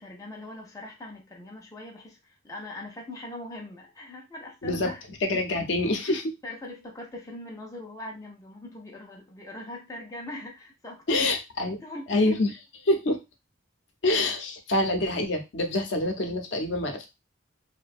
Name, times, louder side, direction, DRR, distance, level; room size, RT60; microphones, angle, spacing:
voice 1, 0.0-5.0 6.4-12.3, left 1 dB, 15° left, 0.4 m, -41 dB
voice 2, 5.2-6.3 11.1-11.8 12.1-13.2 14.0-17.1, left 2 dB, 65° left, 0.5 m, -26 dB
2.5 x 2.1 x 2.4 m
head